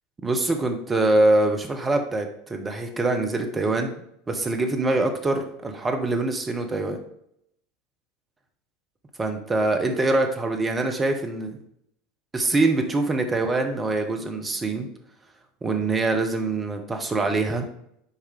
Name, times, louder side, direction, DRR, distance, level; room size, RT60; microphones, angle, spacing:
voice 1, 0.2-4.0 4.3-7.0 9.2-11.6 12.3-14.9 15.6-17.7, right 2 dB, 20° right, 5 dB, 1.2 m, -24 dB
8.2 x 5.1 x 3.7 m, 0.75 s
figure-of-eight pair, 75°, 0 cm